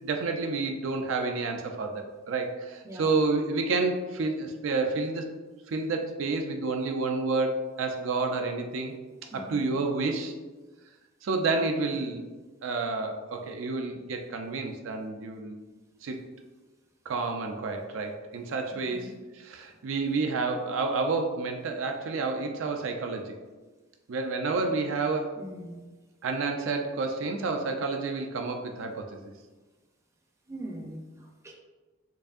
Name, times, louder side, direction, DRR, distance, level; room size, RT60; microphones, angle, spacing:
voice 1, 0.0-5.3 5.7-8.9 9.3-10.3 11.2-12.2 12.6-15.6 16.0-16.2 17.1-23.4 24.1-25.4 26.2-29.3, right 3 dB, 70° right, 3 dB, 0.4 m, -30 dB
voice 2, 9.3-9.7 18.9-19.1 25.4-25.8 30.5-31.5, right 1 dB, 15° right, 0 dB, 0.5 m, -41 dB
4.6 x 2.7 x 2.5 m, 1.3 s
head